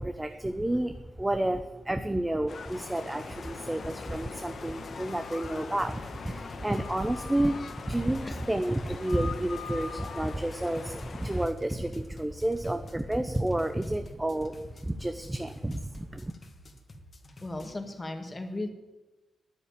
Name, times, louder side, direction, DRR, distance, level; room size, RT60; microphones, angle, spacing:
voice 1, 0.0-14.6 14.8-16.3, right 1 dB, 15° right, 8 dB, 0.8 m, -30 dB
sound 1, 2.5-11.5, left 5 dB, 60° left, 1.3 m, -43 dB
sound 2, 2.7-17.7, left 1 dB, 40° left, 1.8 m, -51 dB
sound 3, 5.1-5.8 6.7-7.9 8.9-10.4, left 7 dB, 75° left, 1.0 m, -43 dB
voice 2, 17.4-18.7, left 2 dB, 25° left, 5 dB, 1.9 m, -36 dB
9.8 x 9.0 x 8.9 m, 1.1 s
cardioid pair, 75°, 0 cm